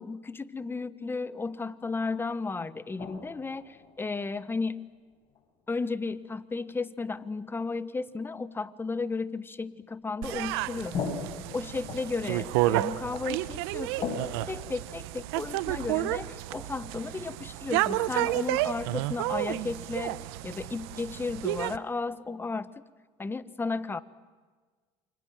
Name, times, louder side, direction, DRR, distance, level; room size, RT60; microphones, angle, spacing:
voice 1, 0.0-4.9 5.7-11.0 11.5-14.2 14.5-22.7 23.2-24.0, left 3 dB, 15° left, 14 dB, 1.4 m, -34 dB
sound 1, 3.0-4.9 5.3-5.4 7.3-7.4 8.1-8.2 9.8-9.9 10.5-15.5, left 5 dB, 40° left, 7.0 m, -40 dB
sound 2, 10.2-21.8, right 16 dB, 85° right, 1.0 m, -31 dB
29.0 x 26.0 x 7.7 m, 1.4 s
supercardioid pair, 95°, 13 cm